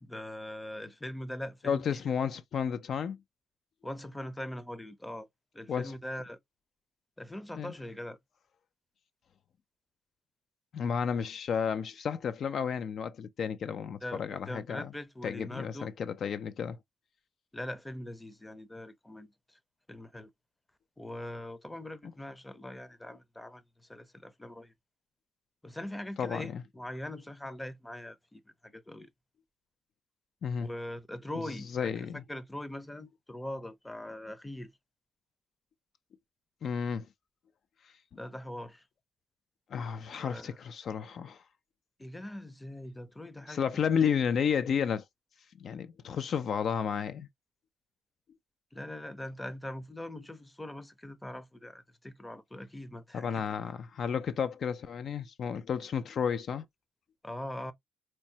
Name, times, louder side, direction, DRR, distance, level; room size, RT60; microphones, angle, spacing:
voice 1, 0.0-2.0 3.8-5.3 5.5-6.4 7.2-8.2 14.0-15.9 17.5-19.6 19.9-20.3 21.0-24.7 25.6-29.1 30.6-34.7 38.1-38.8 40.2-40.6 42.0-43.9 48.7-53.7 57.2-57.7, left 1 dB, 10° left, 0.6 m, -42 dB
voice 2, 1.6-3.2 5.7-5.9 7.5-7.7 10.7-14.9 15.2-16.8 26.2-26.6 30.4-30.7 31.7-32.2 36.6-37.1 39.7-41.4 43.5-45.0 45.6-47.3 53.1-56.6, left 7 dB, 60° left, 0.4 m, -32 dB
4.4 x 2.0 x 2.7 m
cardioid pair, 90°, 0 cm